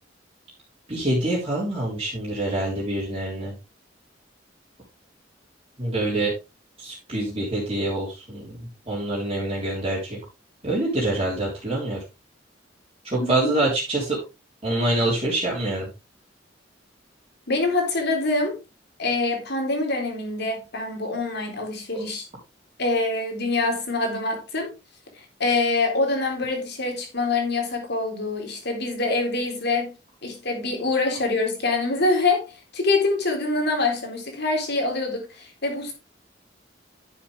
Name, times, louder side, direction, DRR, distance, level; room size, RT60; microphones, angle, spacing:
voice 1, 0.9-3.5 5.8-6.3 6.8-8.6 8.9-10.2 10.6-12.0 13.0-14.2 14.6-15.9, right 1 dB, 30° right, 3.7 m, -25 dB
voice 2, 13.2-13.5 17.5-18.6 19.0-22.3 22.8-24.7 25.2-29.9 30.2-35.9, left 3 dB, 60° left, 3.7 m, -25 dB
11.0 x 7.3 x 3.4 m
head